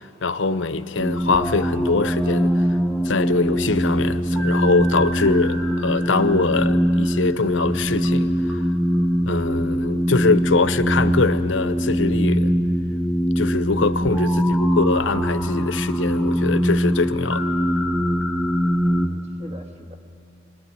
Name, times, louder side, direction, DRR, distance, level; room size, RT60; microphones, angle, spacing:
voice 1, 0.2-2.6 3.0-8.6 9.2-12.5 13.4-17.5, left 3 dB, 75° left, 0.9 m, -23 dB
sound 1, 1.0-19.1, equal, ahead, 1.0 m, -22 dB
voice 2, 18.8-20.0, equal, 35° right, 1.7 m, -42 dB
26.5 x 20.5 x 9.6 m
head